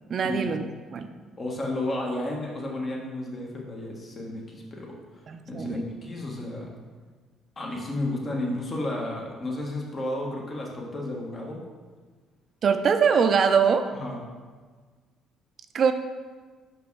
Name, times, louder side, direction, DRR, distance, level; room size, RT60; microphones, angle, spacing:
voice 1, 0.1-0.7 0.9-1.1 5.3-5.8 12.6-13.9 15.7-15.9, right 6 dB, 55° right, 7 dB, 0.5 m, -22 dB
voice 2, 1.4-4.9 5.5-6.7 7.6-11.6 13.9-14.2, left 1 dB, 40° left, -1 dB, 1.6 m, -32 dB
6.0 x 5.1 x 4.8 m, 1.5 s
supercardioid pair, 70°, 0 cm